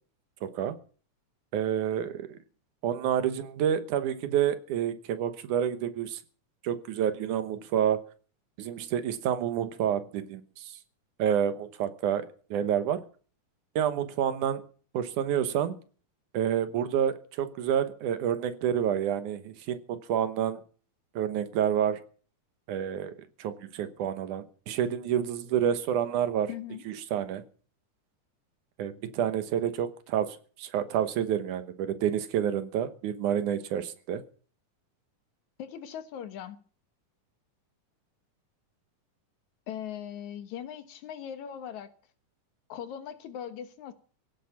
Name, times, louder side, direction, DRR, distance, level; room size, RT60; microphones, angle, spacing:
voice 1, 0.4-0.8 1.5-2.4 2.8-6.2 6.6-8.0 8.6-10.7 11.2-13.0 13.8-14.7 14.9-15.8 16.3-20.6 21.2-22.0 22.7-23.1 23.4-26.5 26.9-27.4 28.8-34.2, right 9 dB, 90° right, 2.6 m, -29 dB
voice 2, 26.5-26.8 35.6-36.6 39.7-41.9 42.7-43.9, left 9 dB, 75° left, 2.6 m, -39 dB
17.0 x 10.5 x 7.1 m
omnidirectional pair, 3.5 m